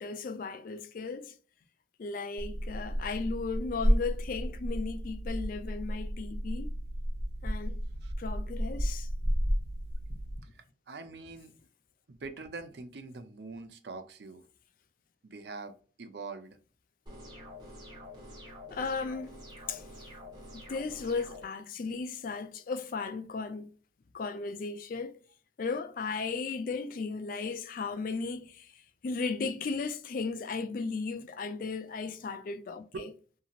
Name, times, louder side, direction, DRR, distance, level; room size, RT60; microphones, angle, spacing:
voice 1, 0.0-1.4 2.0-6.7 7.4-7.8 8.2-9.1 18.7-19.4 19.7-19.8 20.5-23.7 24.1-25.2 25.6-33.1, left 4 dB, 50° left, 0.3 m, -36 dB
sound 1, 2.4-10.4, equal, 20° left, 1.0 m, -32 dB
voice 2, 10.5-11.5 12.1-14.4 15.2-16.6 32.9-33.1, right 3 dB, 65° right, 0.5 m, -44 dB
sound 2, 17.1-21.4, left 1 dB, 25° right, 1.1 m, -47 dB
2.8 x 2.8 x 2.4 m
head